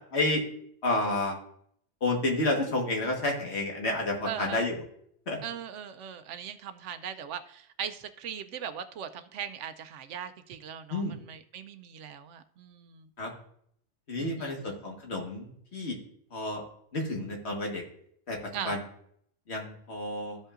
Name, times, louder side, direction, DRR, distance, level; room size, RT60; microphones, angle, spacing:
voice 1, 0.1-0.4 0.8-1.4 2.0-4.8 5.3-5.4 10.9-11.2 13.2-13.3 14.1-16.0 16.3-16.6 16.9-17.8 18.3-18.8 19.5-20.4, left 2 dB, 60° left, 1 dB, 1.7 m, -30 dB
voice 2, 4.2-4.6 5.4-13.1 14.2-14.7 18.5-18.8, right 8 dB, 80° right, 10 dB, 0.9 m, -39 dB
13.5 x 5.4 x 2.5 m, 0.67 s
omnidirectional pair, 1.2 m